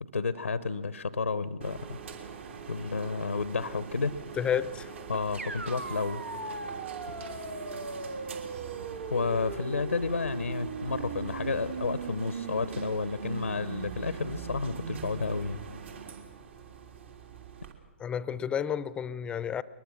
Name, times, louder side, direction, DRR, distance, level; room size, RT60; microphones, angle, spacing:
voice 1, 0.0-2.0 2.7-4.1 5.1-6.2 9.1-15.6, left 4 dB, 85° left, 0.8 m, -31 dB
sound 1, 1.6-17.7, right 6 dB, 65° right, 3.2 m, -43 dB
voice 2, 4.4-4.9 18.0-19.6, left 8 dB, 15° left, 0.6 m, -31 dB
sound 2, 5.4-15.3, right 3 dB, 85° right, 1.8 m, -39 dB
22.0 x 21.5 x 6.1 m
figure-of-eight pair, 120°, 7 cm